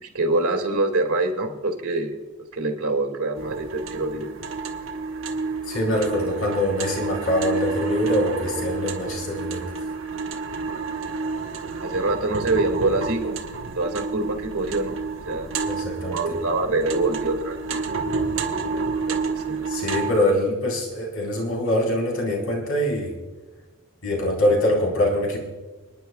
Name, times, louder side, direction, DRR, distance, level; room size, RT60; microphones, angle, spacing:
voice 1, 0.0-2.1 2.5-4.3 11.8-13.4 13.6-15.0 15.2-15.5 16.0-17.8 19.0-19.6, right 2 dB, 80° right, 3 dB, 2.2 m, -25 dB
sound 1, 3.4-20.1, right 4 dB, 60° right, 1.1 m, -29 dB
voice 2, 5.7-9.6 15.6-16.2 19.7-23.1 24.0-25.4, left 1 dB, 70° left, -1 dB, 4.2 m, -24 dB
30.0 x 10.5 x 2.3 m, 1.2 s
head